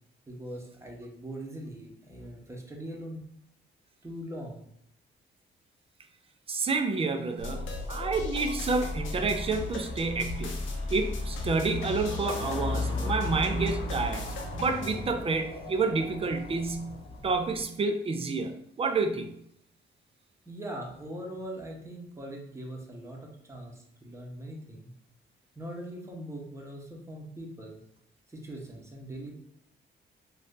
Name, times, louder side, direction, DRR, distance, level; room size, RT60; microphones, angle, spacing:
voice 1, 0.3-3.2 4.0-4.6 20.5-24.9 25.6-27.8 28.3-29.3, right 1 dB, 15° right, 0 dB, 0.8 m, -41 dB
voice 2, 6.5-10.6 10.9-14.2 14.5-16.9 17.2-19.3, right 4 dB, 30° right, 6 dB, 0.4 m, -29 dB
sound 1, 7.4-17.5, left 2 dB, 75° left, 0.7 m, -37 dB
sound 2, 8.5-17.6, left 2 dB, 25° left, 0.7 m, -37 dB
2.6 x 2.4 x 3.6 m, 0.71 s
cardioid pair, 90°, 20 cm